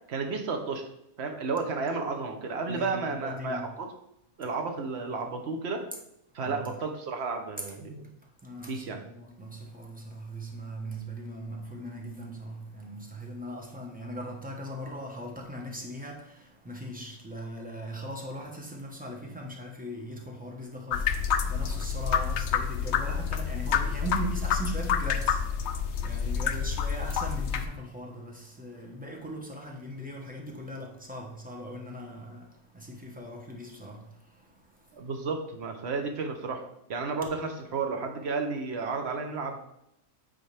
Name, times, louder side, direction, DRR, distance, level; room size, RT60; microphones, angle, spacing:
voice 1, 0.1-0.8 1.2-3.9 4.4-5.8 6.3-8.1 8.7-9.0 26.5-26.6 34.9-36.6 36.9-39.6, right 4 dB, 50° right, 4 dB, 1.1 m, -32 dB
voice 2, 2.7-3.7 6.4-6.7 8.4-35.1, right 1 dB, 5° right, 0 dB, 0.8 m, -40 dB
sound 1, 20.9-27.6, left 7 dB, 65° left, 0.7 m, -28 dB
9.3 x 4.1 x 3.4 m, 0.80 s
omnidirectional pair, 1.6 m